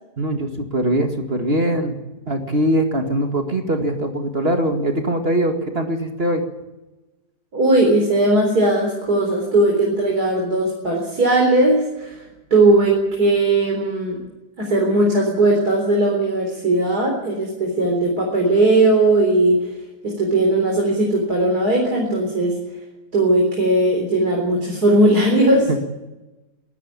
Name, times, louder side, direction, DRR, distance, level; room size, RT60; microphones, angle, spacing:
voice 1, 0.2-2.0 2.3-6.4 25.7-25.8, right 1 dB, 35° right, 4 dB, 2.2 m, -21 dB
voice 2, 7.5-14.3 14.6-19.7 20.0-22.6 23.1-25.7, right 2 dB, 70° right, 0 dB, 4.6 m, -18 dB
22.5 x 13.5 x 8.6 m, 1.1 s
omnidirectional pair, 1.7 m